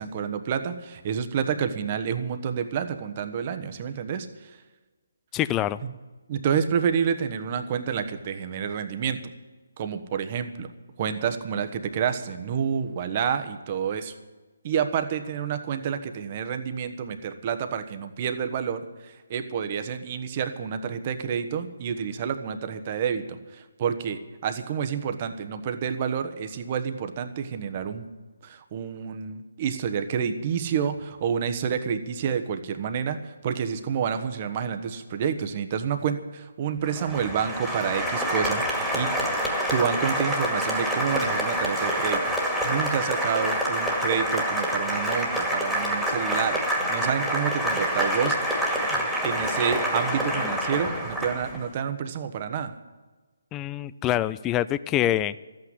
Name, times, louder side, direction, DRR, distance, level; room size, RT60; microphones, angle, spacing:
voice 1, 0.0-4.3 5.8-5.9 6.3-9.2 9.8-10.7 11.0-14.1 14.6-28.1 28.4-39.1 39.7-46.6 46.9-52.7, right 7 dB, 35° right, 8 dB, 1.1 m, -29 dB
voice 2, 5.3-5.8 53.5-55.3, left 13 dB, 15° left, 17 dB, 0.3 m, -25 dB
Applause, 36.8-51.7, equal, ahead, 2.1 m, -27 dB
13.5 x 8.8 x 9.6 m, 1.3 s
figure-of-eight pair, 145°, 0 cm